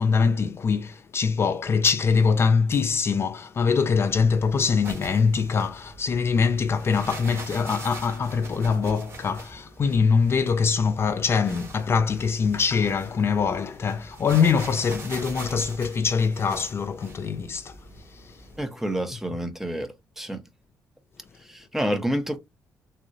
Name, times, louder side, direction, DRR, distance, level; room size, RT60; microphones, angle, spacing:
voice 1, 0.0-17.8 18.0-18.4, left 5 dB, 40° left, 0.3 m, -23 dB
sound 1, 4.1-18.6, right 2 dB, 45° right, 1.4 m, -43 dB
voice 2, 18.6-20.4 21.5-22.4, equal, 5° right, 0.6 m, -28 dB
3.5 x 2.0 x 2.6 m
cardioid pair, 115°, 6 cm